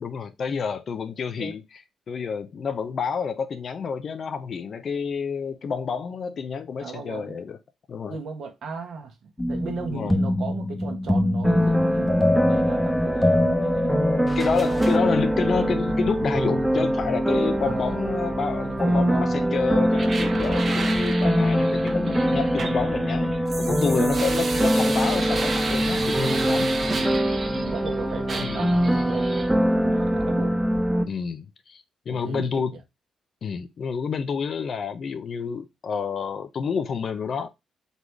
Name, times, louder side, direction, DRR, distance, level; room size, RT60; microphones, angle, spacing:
voice 1, 0.0-7.6 7.9-8.2 9.9-10.1 14.4-26.7 28.4-28.7 31.1-32.7 33.4-37.5, left 6 dB, 60° left, 0.5 m, -29 dB
voice 2, 6.8-7.4 8.1-14.9 17.6-18.0 18.6-19.4 23.9-24.3 27.5-30.6 32.1-32.6, right 5 dB, 70° right, 1.2 m, -36 dB
sound 1, 9.4-15.0, left 1 dB, 20° left, 1.0 m, -25 dB
sound 2, 11.4-31.0, equal, 10° right, 1.0 m, -23 dB
sound 3, 19.9-27.9 28.3-29.5, right 3 dB, 50° right, 1.0 m, -33 dB
4.1 x 3.1 x 3.5 m
supercardioid pair, 55°, 0 cm